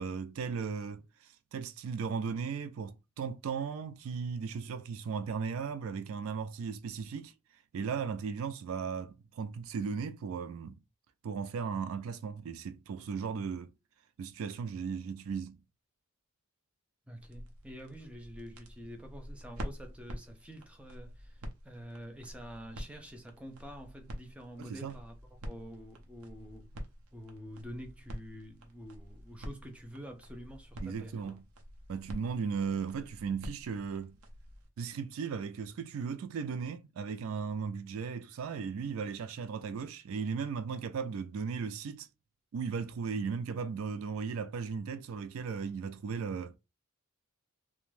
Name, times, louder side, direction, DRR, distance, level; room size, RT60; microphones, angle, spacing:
voice 1, 0.0-7.3 7.7-10.8 11.2-13.7 14.2-15.6 24.6-25.0 30.8-31.4 31.9-34.2 34.8-42.1 42.5-46.6, right 6 dB, 65° right, 0.3 m, -36 dB
voice 2, 17.1-25.2 25.4-26.7 27.1-31.4, equal, 5° right, 0.5 m, -47 dB
sound 1, 17.2-34.7, equal, 85° right, 0.7 m, -47 dB
2.5 x 2.2 x 3.1 m
head